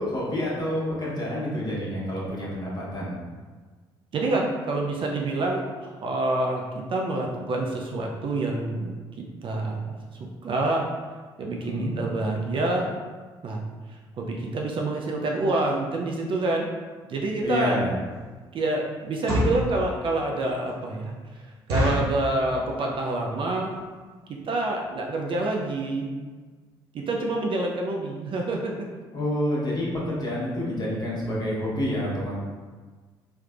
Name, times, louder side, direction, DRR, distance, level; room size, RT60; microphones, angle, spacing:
voice 1, 0.0-3.2 11.5-11.9 17.4-18.0 29.1-32.3, left 1 dB, 30° left, -6 dB, 1.3 m, -28 dB
voice 2, 4.1-6.6 6.9-8.9 9.4-10.8 11.4-12.9 13.4-13.6 14.2-16.7 17.1-17.9 18.5-21.1 21.7-23.8 24.4-26.1 26.9-28.9, right 2 dB, 40° right, 0 dB, 0.5 m, -27 dB
sound 1, 18.1-18.3 19.0-19.7 20.2-20.3 20.7-20.8 21.1-21.2 21.7-22.2 22.8-23.1 23.3-23.4 23.7-23.9 24.5-24.6 24.8-25.0 25.3-25.4 25.6-25.7, equal, 80° right, 0.8 m, -26 dB
3.2 x 3.1 x 2.4 m, 1.4 s
figure-of-eight pair, 45°, 13 cm